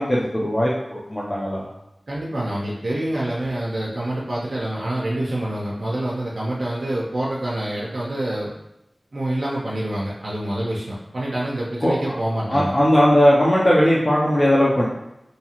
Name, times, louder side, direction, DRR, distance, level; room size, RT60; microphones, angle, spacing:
voice 1, 0.0-1.7 11.8-12.2 12.5-14.9, equal, 30° left, -5 dB, 0.4 m, -18 dB
voice 2, 2.1-8.5 9.1-12.7, right 1 dB, 70° right, -5 dB, 0.4 m, -26 dB
2.7 x 2.3 x 2.8 m, 0.87 s
wide cardioid pair, 70°, 0 cm